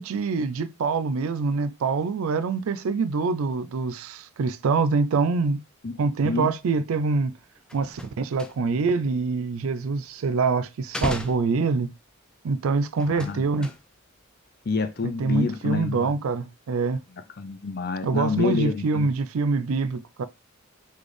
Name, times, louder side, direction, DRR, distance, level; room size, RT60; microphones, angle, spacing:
voice 1, 0.0-5.6 6.0-7.4 7.7-11.9 12.4-13.7 15.0-17.0 18.0-20.3, right 4 dB, 75° right, 0.4 m, -25 dB
sound 1, 7.6-8.9 9.2-10.3 10.8-12.2 13.0-14.2 14.4-14.9 15.2-15.4, equal, 5° left, 0.3 m, -36 dB
voice 2, 13.1-13.5 14.7-16.1 17.4-19.1, left 4 dB, 45° left, 0.6 m, -27 dB
4.0 x 3.3 x 3.2 m
head